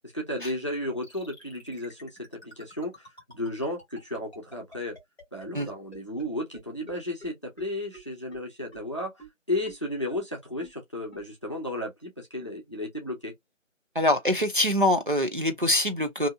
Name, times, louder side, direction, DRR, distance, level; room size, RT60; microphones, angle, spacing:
voice 1, 0.1-5.0 5.3-9.1 9.5-13.3, left 1 dB, 25° left, 0.7 m, -33 dB
sound 1, 1.0-6.3 6.5-6.6 6.9-7.0 7.2-7.3 7.6-7.7 7.9-8.0 8.3-8.4 8.7-8.8 9.2-9.3 9.7-9.8 10.1-10.2 10.6-10.7 11.1-11.2, equal, ahead, 1.1 m, -47 dB
voice 2, 14.0-16.3, left 1 dB, 40° right, 0.5 m, -24 dB
3.8 x 2.7 x 2.3 m
figure-of-eight pair, 160°, 39 cm